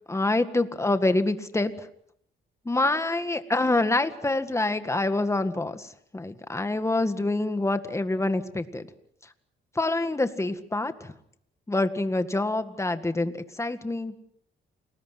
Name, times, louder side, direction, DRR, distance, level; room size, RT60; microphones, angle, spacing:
voice 1, 0.1-1.9 2.7-8.9 9.8-11.1 11.7-14.1, left 2 dB, 15° left, 9 dB, 1.9 m, -26 dB
29.0 x 20.5 x 6.1 m, 0.71 s
cardioid pair, 90°, 20 cm